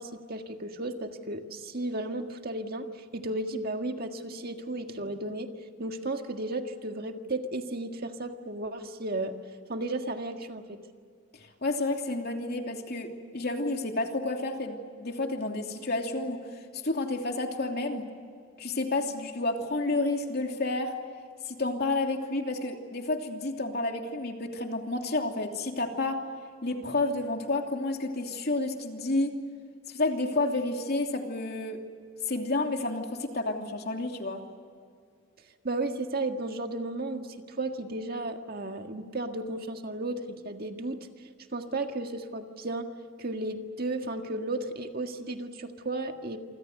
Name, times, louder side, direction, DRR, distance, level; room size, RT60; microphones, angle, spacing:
voice 1, 0.0-5.5 5.8-9.4 9.7-10.8 35.6-41.0 41.5-42.9 43.2-46.4, right 2 dB, 50° right, 5 dB, 1.8 m, -34 dB
voice 2, 11.3-16.4 16.7-18.0 18.6-20.9 21.4-26.2 26.6-29.3 29.9-31.8 32.3-34.4, left 2 dB, 50° left, 3 dB, 2.9 m, -30 dB
28.0 x 25.5 x 6.7 m, 2.2 s
head